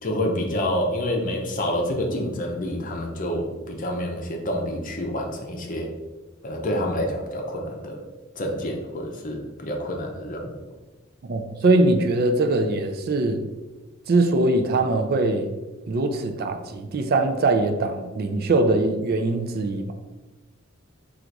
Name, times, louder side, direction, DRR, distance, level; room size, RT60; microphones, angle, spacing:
voice 1, 0.0-5.9 6.4-8.0 8.4-10.6, left 1 dB, 40° left, 2 dB, 0.7 m, -28 dB
voice 2, 11.3-13.4 14.1-15.5 15.9-19.9, right 2 dB, 50° right, 6 dB, 0.4 m, -22 dB
3.9 x 2.5 x 4.5 m, 1.2 s
head